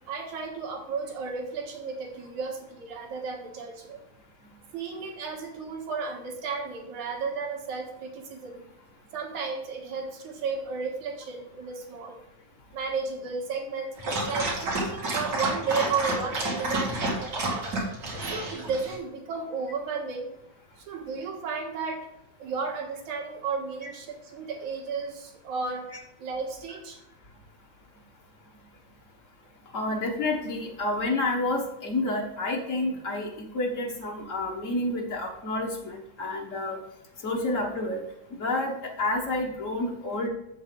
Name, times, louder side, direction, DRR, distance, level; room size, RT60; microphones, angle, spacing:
voice 1, 0.1-4.0 4.7-8.6 9.1-12.2 12.7-13.9 14.3-17.7 18.2-20.3 20.8-22.1 22.4-25.9 26.2-27.0, right 4 dB, 75° right, 0 dB, 2.9 m, -33 dB
Dog, 14.0-19.0, right 2 dB, 40° right, 2.4 m, -30 dB
voice 2, 29.7-36.8 37.2-38.0 38.4-40.3, left 2 dB, 85° left, -1 dB, 0.6 m, -29 dB
7.6 x 7.1 x 5.3 m, 0.83 s
omnidirectional pair, 3.5 m